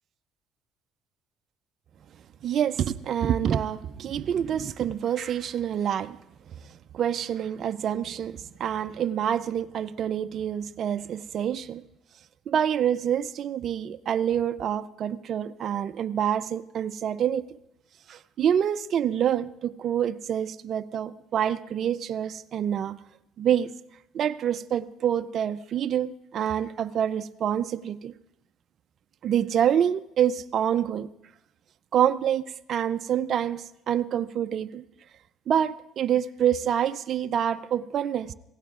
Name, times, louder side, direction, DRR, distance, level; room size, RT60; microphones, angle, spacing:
voice 1, 2.4-6.2 6.9-11.8 12.5-17.6 18.1-23.0 23.4-23.7 24.1-28.1 29.2-31.1 31.9-32.4 32.7-34.8 35.5-38.3, right 9 dB, 50° right, 0.4 m, -27 dB
25.0 x 16.5 x 2.4 m
cardioid pair, 130°, 0 cm